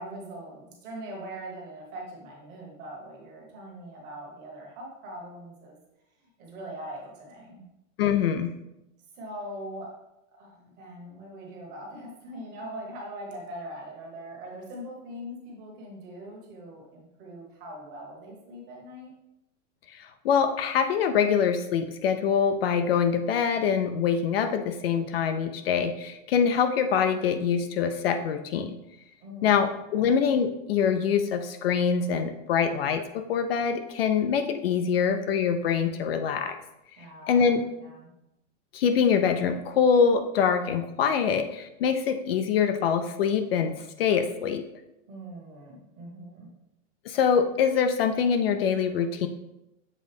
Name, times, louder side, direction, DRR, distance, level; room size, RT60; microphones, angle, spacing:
voice 1, 0.0-5.8 6.4-7.6 9.1-9.9 10.3-19.1 29.2-29.6 29.9-30.1 37.0-38.1 45.1-46.5, right 1 dB, 25° right, -1 dB, 1.4 m, -41 dB
voice 2, 8.0-8.5 19.9-28.8 29.4-36.6 37.3-37.6 38.7-44.6 47.1-49.3, left 7 dB, 55° left, 7 dB, 0.4 m, -24 dB
7.4 x 3.8 x 3.4 m, 0.89 s
supercardioid pair, 170°, 37 cm